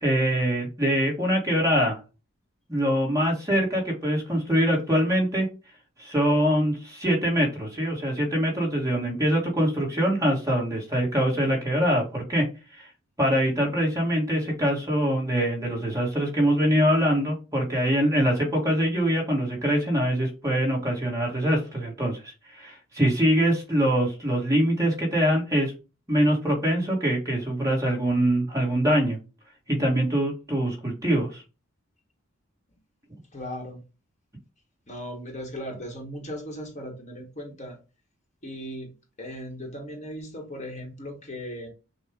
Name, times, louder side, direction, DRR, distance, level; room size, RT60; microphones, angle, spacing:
voice 1, 0.0-2.0 2.7-5.5 6.0-12.5 12.7-12.9 13.2-25.7 26.1-29.2 29.7-31.4, equal, 15° right, 1.4 m, -24 dB
voice 2, 33.3-33.8 34.9-37.8 38.4-41.7, equal, 35° left, 1.2 m, -37 dB
6.3 x 2.4 x 3.5 m
head